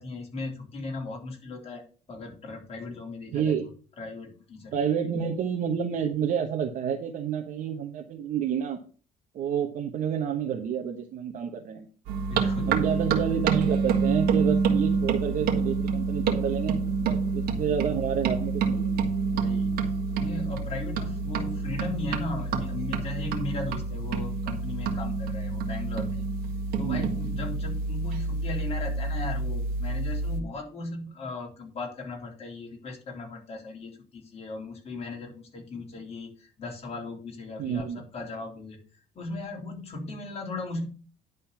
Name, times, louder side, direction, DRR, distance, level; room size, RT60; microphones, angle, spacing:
voice 1, 0.0-1.8 2.1-3.5 4.0-4.8 12.3-12.8 19.3-19.9 20.2-26.3 26.8-38.8 39.2-40.9, left 2 dB, 40° left, 0 dB, 3.8 m, -37 dB
voice 2, 3.3-3.7 4.7-8.8 9.3-11.9 12.7-18.9 26.8-27.0 37.6-38.1, right 8 dB, 60° right, 1 dB, 1.3 m, -29 dB
sound 1, 12.1-30.4, right 4 dB, 80° right, 1.7 m, -28 dB
10.5 x 4.2 x 7.0 m, 0.39 s
cardioid pair, 115°, 16 cm